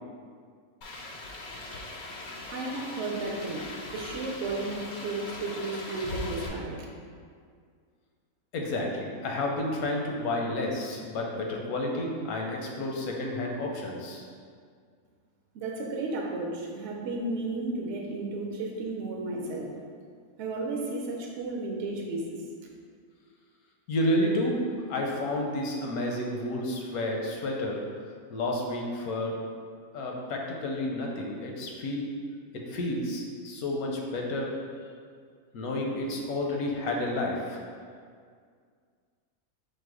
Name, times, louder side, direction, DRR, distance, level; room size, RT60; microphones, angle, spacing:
sound 1, 0.8-6.5, left 2 dB, 65° left, 0.5 m, -40 dB
voice 1, 2.5-6.9 15.5-19.7 20.4-22.4, right 2 dB, 65° right, -1 dB, 0.8 m, -33 dB
voice 2, 8.5-14.3 23.9-27.8 28.3-29.3 29.9-32.1 32.7-34.5 35.5-37.6, left 1 dB, 85° left, 0 dB, 1.2 m, -30 dB
4.7 x 2.2 x 4.7 m, 2.1 s
omnidirectional pair, 1.5 m